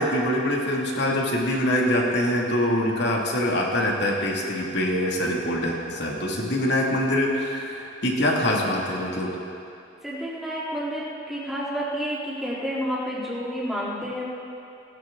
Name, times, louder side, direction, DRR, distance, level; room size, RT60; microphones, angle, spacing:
voice 1, 0.0-9.3, left 1 dB, 60° left, -2 dB, 2.4 m, -24 dB
voice 2, 10.0-14.2, equal, ahead, -8 dB, 3.4 m, -30 dB
19.0 x 17.0 x 3.9 m, 2.6 s
head